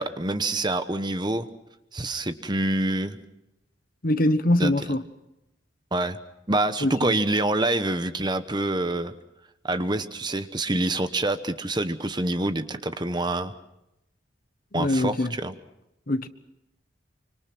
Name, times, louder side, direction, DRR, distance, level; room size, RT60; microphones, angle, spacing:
voice 1, 0.0-1.5 1.9-3.2 4.6-4.9 5.9-6.2 6.5-9.1 9.6-13.5 14.7-15.5, right 2 dB, 20° right, 1.0 m, -26 dB
voice 2, 4.0-5.0 6.8-7.1 14.7-15.3 16.1-16.3, left 1 dB, 45° left, 1.2 m, -23 dB
26.0 x 25.0 x 6.1 m
head